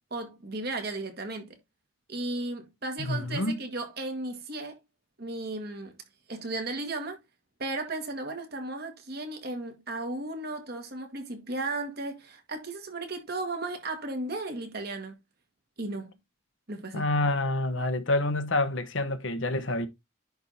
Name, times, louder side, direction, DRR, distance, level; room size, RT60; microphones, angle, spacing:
voice 1, 0.1-1.6 2.1-4.8 5.2-5.9 6.3-7.2 7.6-15.1 15.8-16.1 16.7-17.1, right 2 dB, 45° right, 1.9 m, -35 dB
voice 2, 3.0-3.6 16.9-19.9, left 2 dB, 60° left, 1.0 m, -27 dB
10.5 x 3.6 x 4.2 m
head